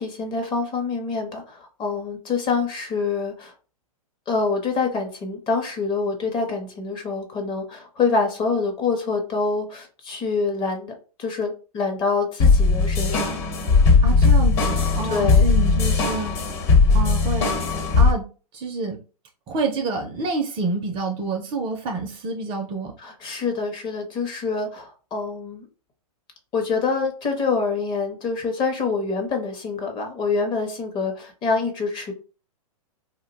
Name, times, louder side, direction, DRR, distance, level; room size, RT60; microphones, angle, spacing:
voice 1, 0.0-3.5 4.3-13.4 15.1-15.5 23.0-25.7 26.5-32.1, left 4 dB, 25° left, 3 dB, 0.7 m, -26 dB
sound 1, 12.4-18.1, left 4 dB, 40° left, 1.1 m, -18 dB
voice 2, 14.0-16.7 16.9-17.5 17.9-18.2 18.5-19.0 19.5-22.9, right 3 dB, 25° right, 4 dB, 0.5 m, -28 dB
2.4 x 2.1 x 3.9 m, 0.35 s
hypercardioid pair, 135°, 19 cm